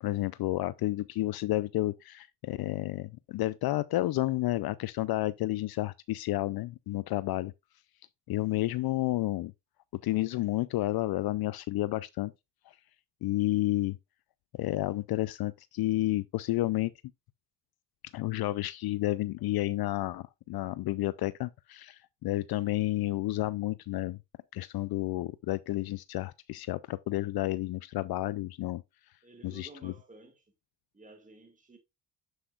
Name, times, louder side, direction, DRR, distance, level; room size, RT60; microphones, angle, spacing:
voice 1, 0.0-7.5 8.3-9.5 10.0-12.3 12.7-12.8 13.2-14.0 14.6-16.9 18.0-24.2 24.5-28.8 29.4-29.9, left 17 dB, 60° left, 0.5 m, -31 dB
voice 2, 29.2-30.5 30.9-31.8, right 2 dB, 20° right, 1.9 m, -53 dB
7.9 x 7.8 x 2.4 m
supercardioid pair, 70°, 42 cm